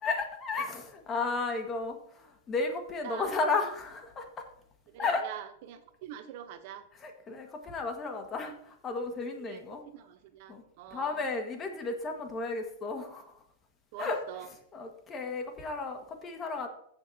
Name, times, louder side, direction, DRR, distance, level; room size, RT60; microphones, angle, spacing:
voice 1, 0.0-4.4 5.0-5.2 7.0-9.8 10.5-10.6 10.9-13.2 14.0-14.2 14.7-16.7, left 3 dB, 25° left, 4 dB, 1.6 m, -33 dB
voice 2, 3.0-3.4 4.9-6.8 9.4-11.3 13.9-14.5, right 10 dB, 55° right, 9 dB, 0.9 m, -45 dB
15.5 x 6.9 x 2.8 m, 0.70 s
hypercardioid pair, 130°, 0 cm